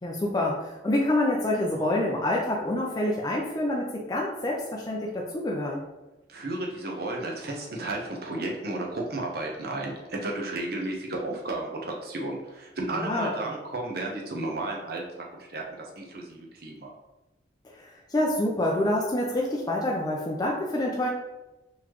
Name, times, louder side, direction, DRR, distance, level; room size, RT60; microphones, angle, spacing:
voice 1, 0.0-5.8 12.9-13.4 17.6-21.1, left 1 dB, 20° left, -2 dB, 0.4 m, -27 dB
voice 2, 6.3-16.9, right 2 dB, 60° right, 0 dB, 0.8 m, -33 dB
4.0 x 3.1 x 3.0 m, 1.0 s
head